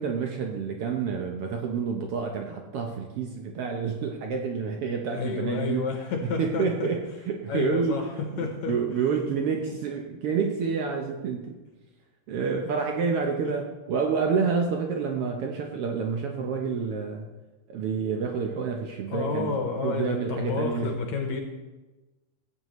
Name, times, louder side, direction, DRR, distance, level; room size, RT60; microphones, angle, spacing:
voice 1, 0.0-5.9 6.4-11.6 12.3-17.3 17.7-19.5 19.8-21.0, right 5 dB, 85° right, 3 dB, 1.2 m, -28 dB
voice 2, 5.1-6.9 7.5-8.8 9.7-9.8 13.4-13.6 19.1-21.4, left 5 dB, 70° left, 3 dB, 2.0 m, -30 dB
16.0 x 8.5 x 3.1 m, 1.1 s
omnidirectional pair, 3.7 m